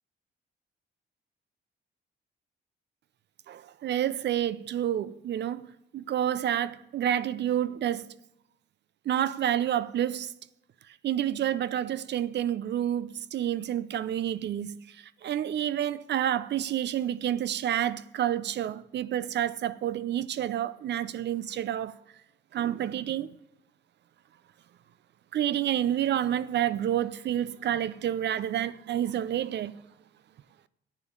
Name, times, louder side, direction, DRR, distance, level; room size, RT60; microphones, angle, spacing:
voice 1, 3.5-8.1 9.1-10.3 10.9-21.9 22.5-23.4 25.3-29.8, right 11 dB, 60° right, 0.6 m, -29 dB
9.2 x 7.0 x 9.0 m
cardioid pair, 90°, 20 cm